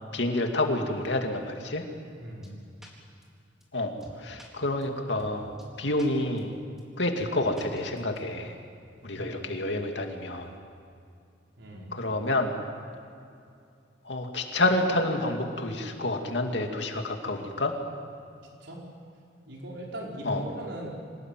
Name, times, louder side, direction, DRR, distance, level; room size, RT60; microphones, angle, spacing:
voice 1, 0.1-1.8 3.7-3.9 4.2-6.5 7.0-8.6 9.0-10.5 11.9-12.5 14.0-17.7 20.2-20.4, left 2 dB, 65° left, 3 dB, 2.6 m, -28 dB
voice 2, 2.2-2.5 9.1-9.6 11.6-11.9 18.6-18.8 19.5-20.9, right 1 dB, 85° right, -2 dB, 5.1 m, -39 dB
sound 1, 2.4-2.5 2.8-2.9 3.2-3.3 3.6-3.7 4.0-4.5 4.8-4.9 5.2-5.3 5.6-5.7 6.0-6.1 6.4-6.5 6.8-6.9 7.2-7.3 7.6-8.2, equal, ahead, 4.3 m, -47 dB
26.5 x 19.0 x 9.3 m, 2.5 s
head